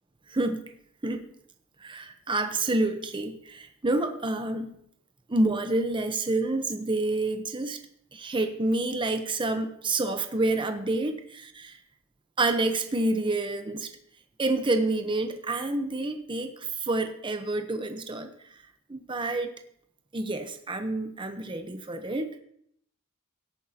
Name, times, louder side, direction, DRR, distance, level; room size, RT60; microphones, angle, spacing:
voice 1, 0.3-0.7 1.0-1.2 1.8-4.7 5.3-7.8 8.1-11.8 12.4-13.9 14.4-18.3 18.9-19.5 20.1-22.3, right 2 dB, 25° right, 7 dB, 0.8 m, -28 dB
17.5 x 9.1 x 2.8 m, 0.69 s
head